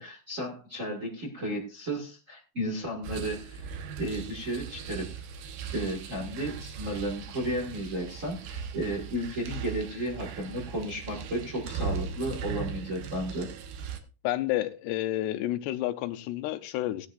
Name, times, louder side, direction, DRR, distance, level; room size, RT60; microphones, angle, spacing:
voice 1, 0.0-3.7 4.0-5.2 5.7-13.5, right 1 dB, 35° right, 0 dB, 1.3 m, -33 dB
sound 1, 3.0-14.0, right 6 dB, 65° right, 2.5 m, -38 dB
voice 2, 14.2-17.1, left 14 dB, 90° left, 8 dB, 2.9 m, -30 dB
17.5 x 10.5 x 2.5 m, 0.34 s
omnidirectional pair, 4.7 m